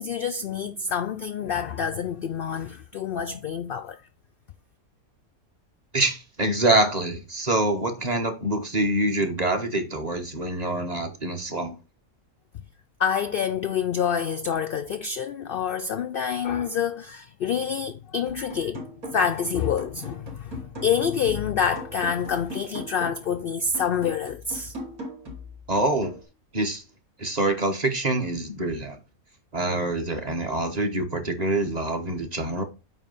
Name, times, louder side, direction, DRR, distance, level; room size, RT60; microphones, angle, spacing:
voice 1, 0.0-4.0 13.0-18.8 19.1-24.7, left 7 dB, 70° left, 0.5 m, -27 dB
voice 2, 5.9-11.7 25.7-26.1 26.5-26.8 27.2-29.0 29.5-32.6, right 2 dB, 30° right, 1.1 m, -25 dB
sound 1, 18.3-19.4 19.8-23.3 23.7-26.3, equal, 85° right, 3.3 m, -40 dB
9.1 x 3.1 x 5.4 m
omnidirectional pair, 1.5 m